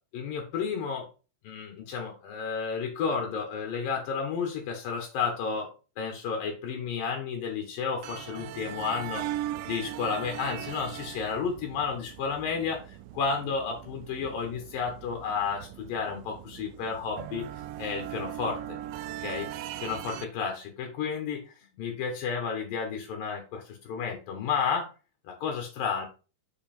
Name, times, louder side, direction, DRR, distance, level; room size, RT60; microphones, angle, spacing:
voice 1, 0.1-1.1 1.4-5.7 6.0-9.2 9.7-17.5 17.8-18.8 19.2-19.5 19.8-24.9 25.3-26.1, left 6 dB, 85° left, 3 dB, 3.1 m, -32 dB
sound 1, 8.0-20.3, right 13 dB, 85° right, 2.2 m, -39 dB
6.6 x 5.3 x 4.4 m, 0.33 s
omnidirectional pair, 3.9 m